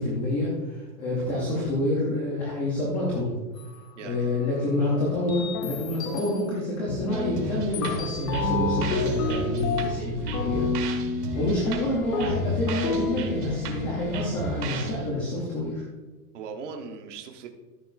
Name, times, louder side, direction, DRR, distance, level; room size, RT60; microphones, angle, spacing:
voice 1, 0.0-3.3 4.0-10.6 11.3-15.8, left 1 dB, 10° left, -4 dB, 0.6 m, -28 dB
sound 1, 3.6-3.8 4.3-4.4 4.9-6.5 6.9-7.4 7.7-14.9, left 3 dB, 80° left, 1.8 m, -30 dB
voice 2, 4.0-4.4 16.3-17.5, right 5 dB, 50° right, 3 dB, 1.2 m, -39 dB
sound 2, 7.1-15.1, right 2 dB, 75° right, 1.7 m, -34 dB
13.0 x 6.8 x 2.5 m, 1.2 s
supercardioid pair, 175°, 48 cm